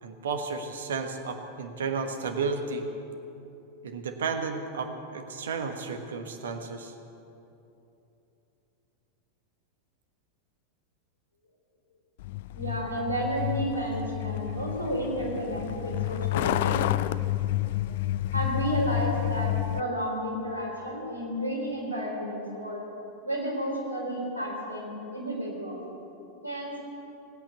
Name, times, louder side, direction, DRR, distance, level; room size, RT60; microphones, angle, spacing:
voice 1, 0.0-2.9 3.8-6.9, right 4 dB, 65° right, 6 dB, 1.4 m, -33 dB
Truck, 12.2-19.8, left 14 dB, 55° left, 0.4 m, -30 dB
voice 2, 12.5-17.1 18.3-22.8 23.2-25.8 26.4-26.8, equal, 85° left, -2 dB, 4.0 m, -32 dB
19.0 x 8.9 x 8.4 m, 2.9 s
figure-of-eight pair, 90°, 0 cm